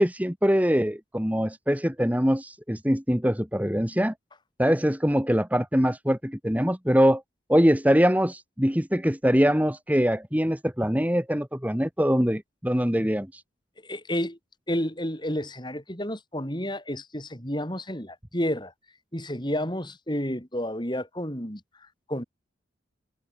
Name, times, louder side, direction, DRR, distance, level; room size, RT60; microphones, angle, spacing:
voice 1, 0.0-4.1 4.6-7.2 7.5-13.4, equal, 10° right, 2.6 m, -23 dB
voice 2, 13.8-14.4 14.7-18.7 19.1-22.2, equal, 25° left, 7.1 m, -31 dB
head